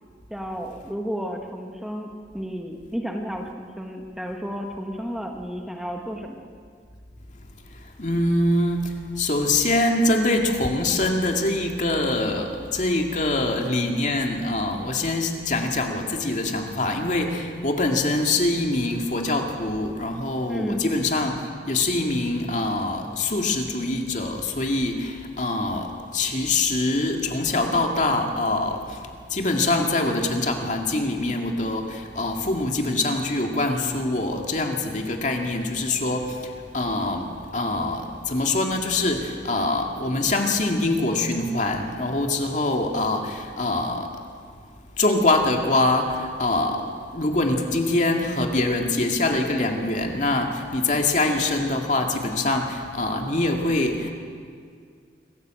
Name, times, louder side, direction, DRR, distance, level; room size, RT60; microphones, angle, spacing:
voice 1, 0.3-6.5 20.5-20.9, equal, ahead, 2 dB, 1.4 m, -32 dB
voice 2, 8.0-29.0 29.3-44.1 45.0-46.9 47.1-54.1, left 2 dB, 40° left, 3 dB, 2.3 m, -24 dB
26.5 x 15.5 x 7.8 m, 2.1 s
head